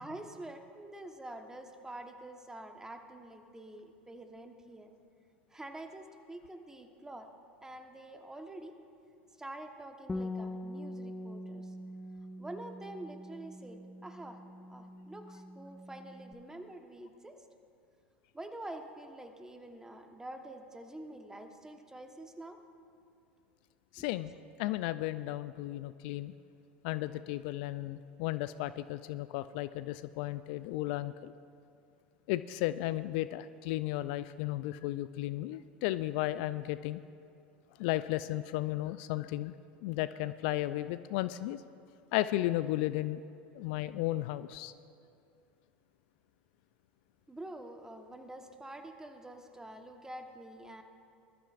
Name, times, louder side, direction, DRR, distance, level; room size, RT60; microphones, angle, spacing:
voice 1, 0.0-4.9 5.5-7.3 7.6-8.7 9.4-11.7 12.4-14.4 14.7-17.4 18.3-22.6 24.0-24.1 47.3-50.8, right 1 dB, 10° right, 5 dB, 1.2 m, -47 dB
Bass guitar, 10.1-16.3, left 1 dB, 15° left, 0.6 m, -43 dB
voice 2, 23.9-24.3 24.6-26.3 26.8-31.3 32.3-37.0 37.8-39.5 39.8-41.6 42.1-43.2 43.6-44.7, left 16 dB, 60° left, 14 dB, 0.4 m, -34 dB
21.0 x 13.0 x 2.5 m, 2.5 s
hypercardioid pair, 80°, 6 cm